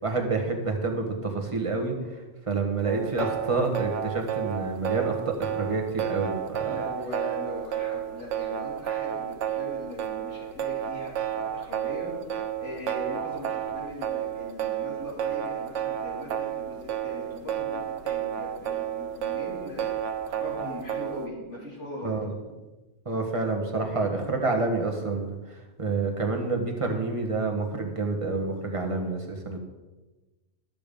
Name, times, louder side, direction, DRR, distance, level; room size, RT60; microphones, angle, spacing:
voice 1, 0.0-2.2 2.5-6.8 22.0-22.3 23.0-29.6, right 3 dB, 25° right, 2 dB, 1.4 m, -28 dB
sound 1, 2.9-21.3, right 10 dB, 80° right, 1.0 m, -31 dB
voice 2, 6.6-12.4 12.6-22.2, left 1 dB, 75° left, -4 dB, 3.4 m, -40 dB
12.5 x 6.9 x 5.3 m, 1.2 s
omnidirectional pair, 1.2 m